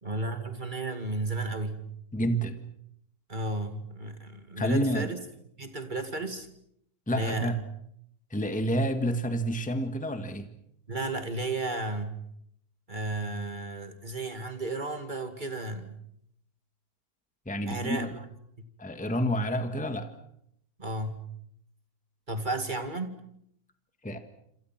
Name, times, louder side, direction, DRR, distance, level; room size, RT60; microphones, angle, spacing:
voice 1, 0.0-1.9 3.3-5.2 5.6-6.5 7.1-7.6 10.9-12.2 12.9-16.0 17.7-18.3 20.8-21.3 22.3-23.2, right 2 dB, 30° right, 7 dB, 2.3 m, -33 dB
voice 2, 2.1-2.6 4.6-5.1 7.1-7.6 8.3-10.5 17.4-18.1 18.8-20.1 24.0-24.2, equal, 5° left, 7 dB, 1.6 m, -29 dB
27.5 x 27.5 x 6.0 m, 0.73 s
omnidirectional pair, 1.7 m